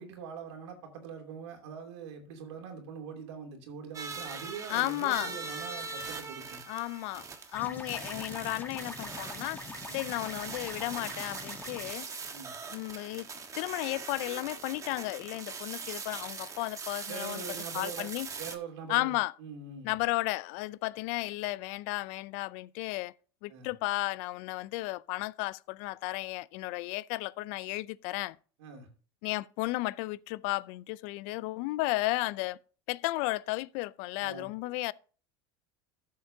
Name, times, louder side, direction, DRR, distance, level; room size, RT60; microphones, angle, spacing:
voice 1, 0.0-6.6 7.6-7.8 9.9-10.1 12.3-12.5 17.1-18.1 18.4-20.0 23.5-23.7 28.6-28.9 34.2-34.7, right 6 dB, 85° right, 2.8 m, -43 dB
sound 1, 3.9-18.6, right 5 dB, 25° right, 1.4 m, -41 dB
voice 2, 4.7-5.3 6.7-7.3 7.5-9.6 9.9-12.1 12.7-13.3 13.5-18.3 18.9-19.3 19.8-23.1 23.4-28.4 29.2-32.6 32.9-34.9, left 20 dB, 65° left, 0.4 m, -34 dB
sound 2, 7.5-11.9, left 3 dB, 15° left, 1.3 m, -44 dB
14.0 x 7.5 x 2.7 m
supercardioid pair, 115°, 14 cm